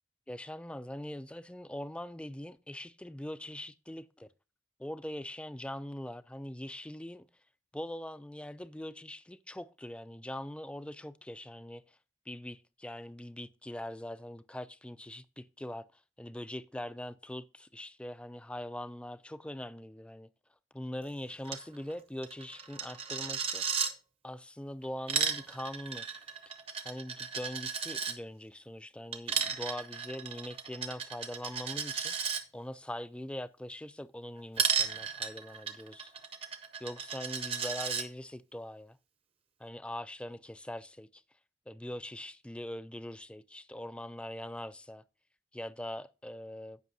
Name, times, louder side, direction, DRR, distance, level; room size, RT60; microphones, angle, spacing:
voice 1, 0.3-4.3 4.8-7.3 7.7-12.0 12.3-20.3 20.7-23.7 24.2-26.3 26.8-32.1 32.5-36.1 36.8-39.0 39.6-41.2 41.7-45.0 45.5-46.8, left 1 dB, 5° left, 0.3 m, -42 dB
Coin (dropping), 21.4-21.6 21.9-22.0 22.2-23.9 24.8-28.1 29.1-32.4 34.6-38.0, right 6 dB, 30° right, 0.9 m, -34 dB
16.5 x 6.0 x 2.7 m
head